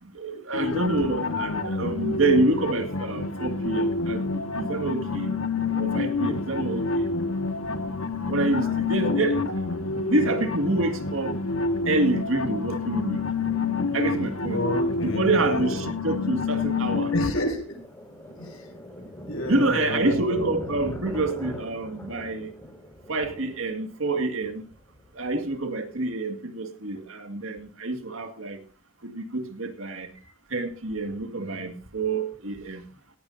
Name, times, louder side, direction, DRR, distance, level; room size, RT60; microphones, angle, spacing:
voice 1, 0.0-5.3 5.8-7.1 8.3-9.4 10.1-11.3 11.9-13.2 13.9-14.6 15.0-17.1 19.5-22.5 23.1-24.6 25.2-28.6 29.0-30.1 30.5-32.8, right 2 dB, 70° right, 2.1 m, -27 dB
sound 1, 0.5-17.3, left 4 dB, 90° left, 1.7 m, -28 dB
Thunder, 11.7-12.3 12.5-12.6 13.1-13.3 13.7-26.1, equal, 15° left, 5.7 m, -42 dB
voice 2, 14.5-15.8 17.1-17.8 18.4-18.7 19.3-20.5, equal, 75° left, 5.7 m, -30 dB
17.5 x 16.5 x 2.7 m
head